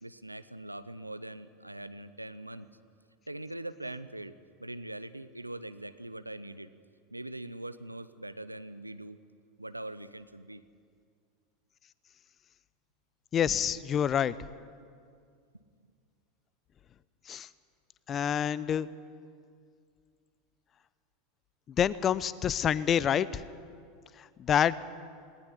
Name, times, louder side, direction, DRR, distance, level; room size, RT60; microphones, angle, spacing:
voice 1, 0.0-2.7 3.3-4.3 4.6-6.7 7.1-9.2 9.6-10.6, right 1 dB, 90° right, 13 dB, 0.7 m, -42 dB
voice 2, 13.3-14.3 17.3-17.5 18.1-18.9 21.8-23.4 24.4-24.7, left 9 dB, 30° left, 19 dB, 0.7 m, -27 dB
19.0 x 18.5 x 9.8 m, 2.2 s
figure-of-eight pair, 80°, 0 cm